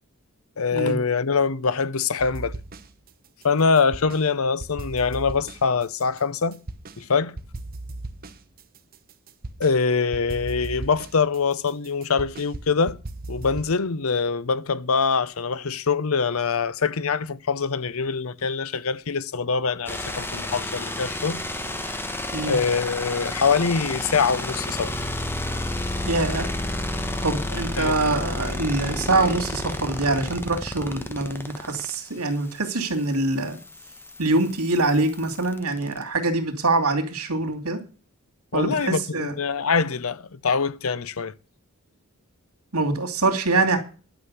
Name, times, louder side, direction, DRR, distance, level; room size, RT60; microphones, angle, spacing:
voice 1, 0.6-2.5 3.4-6.6 7.0-7.3 9.6-13.0 13.3-21.4 22.4-24.9 27.8-27.9 38.5-41.3, left 5 dB, 65° left, 0.7 m, -24 dB
sound 1, 2.2-3.1 3.4-4.3 4.6-7.0 7.4-9.8 10.1-13.8, right 2 dB, 40° right, 1.0 m, -37 dB
sound 2, 19.9-36.0, left 1 dB, 10° left, 1.2 m, -31 dB
voice 2, 26.0-26.5 27.2-33.6 34.2-37.8 38.5-39.4 42.7-43.8, right 2 dB, 80° right, 2.8 m, -24 dB
11.5 x 6.2 x 8.0 m
head